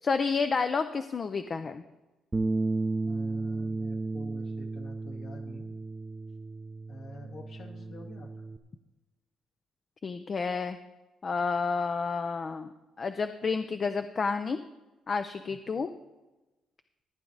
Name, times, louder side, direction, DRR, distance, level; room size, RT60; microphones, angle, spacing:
voice 1, 0.0-1.8 10.0-10.8 11.2-12.7 13.0-14.6 15.1-15.9, left 5 dB, 40° left, 9 dB, 0.5 m, -30 dB
Bass guitar, 2.3-8.6, right 3 dB, 20° right, 0.6 m, -33 dB
voice 2, 3.0-5.7 6.9-8.3 15.5-15.8, left 1 dB, 65° left, 1 dB, 2.0 m, -48 dB
14.5 x 8.9 x 4.0 m, 1.1 s
cardioid pair, 90°, 0 cm